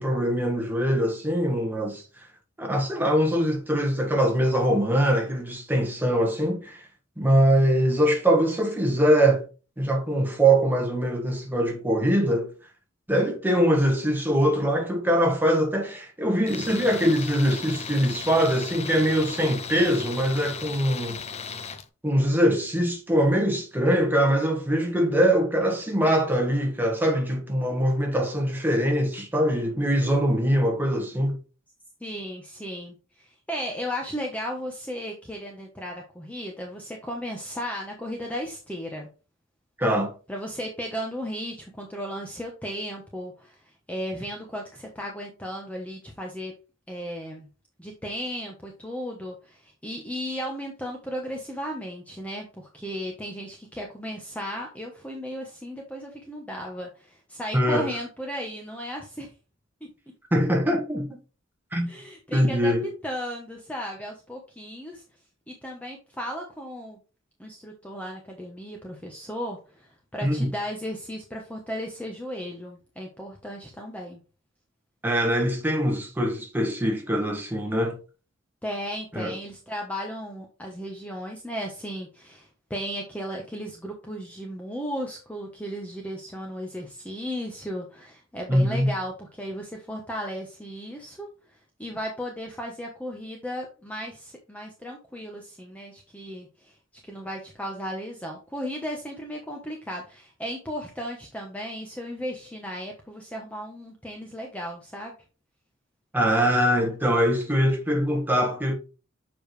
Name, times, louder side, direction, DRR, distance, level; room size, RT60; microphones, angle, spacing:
voice 1, 0.0-2.3 2.6-6.9 7.2-9.4 9.8-12.5 13.1-21.2 22.0-31.4 39.8-40.1 57.5-57.9 60.3-61.2 61.7-61.9 62.3-62.9 70.2-70.5 75.0-78.0 79.1-79.3 88.5-88.9 106.1-108.7, equal, 10° right, 1.6 m, -23 dB
Tools, 16.5-21.9, left 6 dB, 30° left, 0.6 m, -36 dB
voice 2, 32.0-39.1 40.3-43.6 43.9-46.5 46.9-47.5 47.8-59.3 61.9-62.7 63.0-65.0 65.5-67.0 67.4-74.2 78.6-96.7 97.0-105.1, equal, 5° left, 1.1 m, -35 dB
7.0 x 5.2 x 3.3 m
head